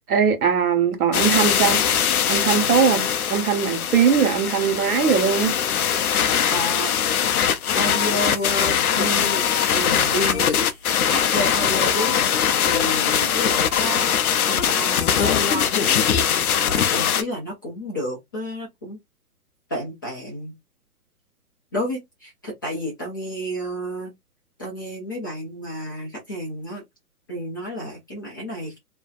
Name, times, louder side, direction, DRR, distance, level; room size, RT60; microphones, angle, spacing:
voice 1, 0.0-1.8 2.3-5.5, right 7 dB, 65° right, 1.1 m, -20 dB
sound 1, 1.1-17.2, left 8 dB, 65° left, 0.6 m, -21 dB
voice 2, 6.5-6.9 7.7-9.4 9.7-12.2 12.6-14.2 14.5-16.0 16.9-19.0 19.7-20.6 21.7-24.1 24.6-26.8 27.3-28.8, equal, 15° left, 0.4 m, -30 dB
2.6 x 2.1 x 2.4 m
figure-of-eight pair, 130°, 47 cm